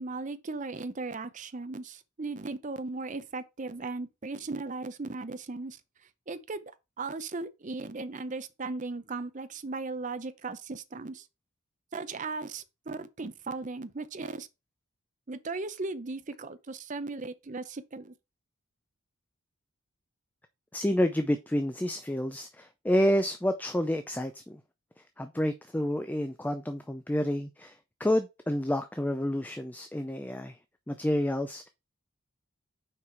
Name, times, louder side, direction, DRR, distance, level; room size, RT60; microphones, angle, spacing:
voice 1, 0.0-5.8 6.3-6.6 7.0-11.3 11.9-14.5 15.3-18.1, right 3 dB, 35° right, 0.6 m, -37 dB
voice 2, 20.7-24.6 25.2-30.6 30.9-31.7, left 1 dB, 10° left, 0.4 m, -29 dB
6.0 x 4.7 x 4.5 m
head